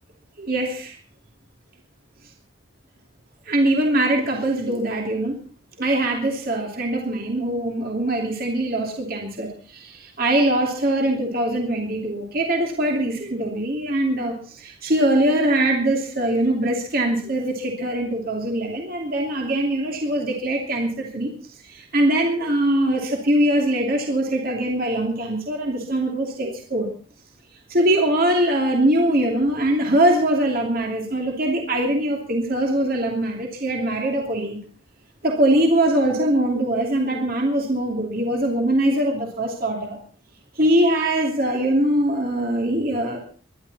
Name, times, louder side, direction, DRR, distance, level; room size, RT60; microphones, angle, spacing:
voice 1, 0.4-1.0 3.5-5.4 5.8-26.9 27.7-34.6 35.2-40.0 40.5-43.2, right 1 dB, 50° right, 1 dB, 2.8 m, -22 dB
24.0 x 11.5 x 4.2 m, 0.39 s
head